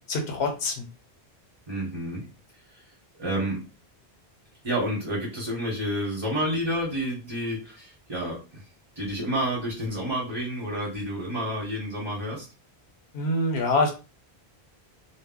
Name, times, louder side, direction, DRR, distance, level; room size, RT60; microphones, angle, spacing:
voice 1, 0.1-0.8 13.1-13.9, left 2 dB, 80° left, 3 dB, 0.9 m, -25 dB
voice 2, 1.7-2.3 2.7-2.8 3.2-3.6 4.6-8.6 9.0-12.5, equal, 30° right, -3 dB, 0.8 m, -29 dB
2.1 x 2.0 x 3.6 m, 0.31 s
omnidirectional pair, 1.1 m